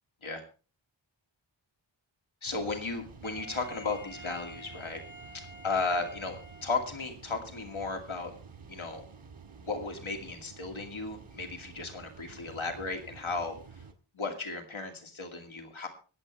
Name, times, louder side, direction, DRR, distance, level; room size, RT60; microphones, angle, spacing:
voice 1, 2.4-5.0 5.3-8.3 8.7-9.0 9.6-13.6 14.1-15.9, left 3 dB, 75° left, 4 dB, 2.5 m, -35 dB
sound 1, 2.4-13.9, right 5 dB, 90° right, 1.9 m, -51 dB
Wind instrument woodwind instrument, 3.2-7.2, equal, 40° left, 4.8 m, -49 dB
25.5 x 8.5 x 3.4 m, 0.35 s
wide cardioid pair, 80°, 48 cm